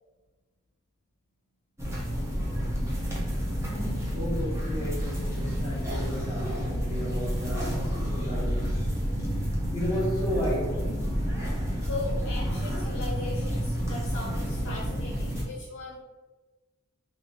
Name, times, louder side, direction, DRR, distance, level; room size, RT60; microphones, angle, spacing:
sound 1, 1.8-15.4, equal, 15° right, 0.6 m, -29 dB
voice 1, 3.6-9.0 9.7-11.2, equal, 15° left, -8 dB, 1.4 m, -34 dB
voice 2, 11.8-16.0, left 3 dB, 55° left, -5 dB, 0.8 m, -38 dB
3.0 x 3.0 x 2.9 m, 1.2 s
head